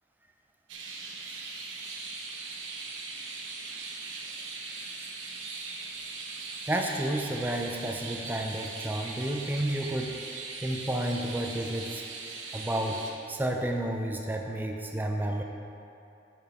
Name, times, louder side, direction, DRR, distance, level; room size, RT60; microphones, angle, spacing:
sound 1, 0.7-13.1, right 4 dB, 90° right, 1.0 m, -40 dB
voice 1, 6.7-10.2 10.6-12.0 12.5-13.0 13.3-15.4, right 1 dB, 10° right, 2 dB, 0.4 m, -31 dB
8.7 x 6.2 x 4.2 m, 2.7 s
head